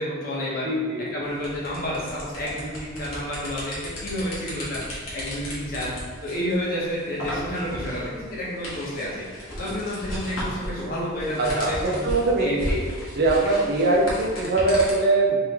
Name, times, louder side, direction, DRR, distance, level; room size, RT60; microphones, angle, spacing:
voice 1, 0.0-0.7 1.1-5.9 6.2-12.0 12.4-12.8, equal, 45° left, -6 dB, 1.2 m, -30 dB
voice 2, 0.6-1.2 11.4-12.5 13.1-15.5, right 2 dB, 50° right, -1 dB, 0.7 m, -22 dB
sound 1, 1.3-14.9, equal, 70° left, 1.4 m, -35 dB
3.9 x 3.2 x 3.6 m, 1.5 s
head